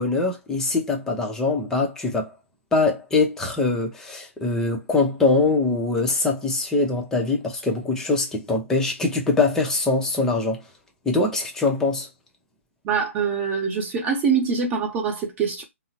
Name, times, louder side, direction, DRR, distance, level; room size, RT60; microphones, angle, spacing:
voice 1, 0.0-2.3 2.7-10.6 11.1-12.1, left 3 dB, 5° left, 0.6 m, -23 dB
voice 2, 12.8-15.6, right 6 dB, 20° right, 1.0 m, -24 dB
3.7 x 2.0 x 2.7 m
figure-of-eight pair, 135°, 7 cm